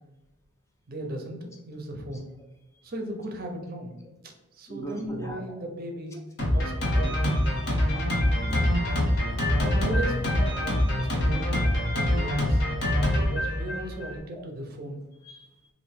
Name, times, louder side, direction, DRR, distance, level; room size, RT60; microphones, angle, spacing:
voice 1, 0.9-2.3 2.8-3.9 4.2-6.2 6.5-7.2 9.6-12.6 13.1-15.0, right 1 dB, 45° right, 3 dB, 0.5 m, -37 dB
voice 2, 4.7-5.4 6.1-6.2 8.4-9.1 14.3-14.4 15.2-15.7, left 1 dB, 15° left, 1 dB, 0.4 m, -34 dB
Drum kit, 6.4-14.2, left 1 dB, 55° left, 0.8 m, -25 dB
3.1 x 2.6 x 3.2 m, 1.0 s
head